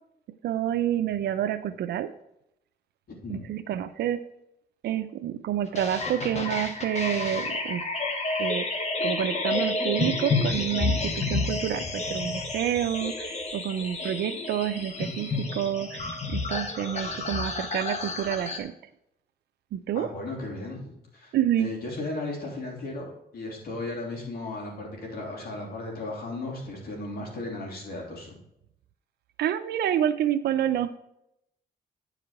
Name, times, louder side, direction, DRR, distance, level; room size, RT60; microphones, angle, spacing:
voice 1, 0.4-2.1 3.3-4.2 4.8-7.8 8.4-8.7 9.0-18.7 19.7-20.1 21.3-21.7 29.4-31.0, right 10 dB, 85° right, 9 dB, 0.5 m, -28 dB
sound 1, 5.7-18.6, left 3 dB, 40° left, 1.5 m, -30 dB
voice 2, 19.9-21.3 21.6-28.3, left 2 dB, 65° left, -1 dB, 3.4 m, -35 dB
9.5 x 5.0 x 4.7 m, 0.81 s
cardioid pair, 95°, 17 cm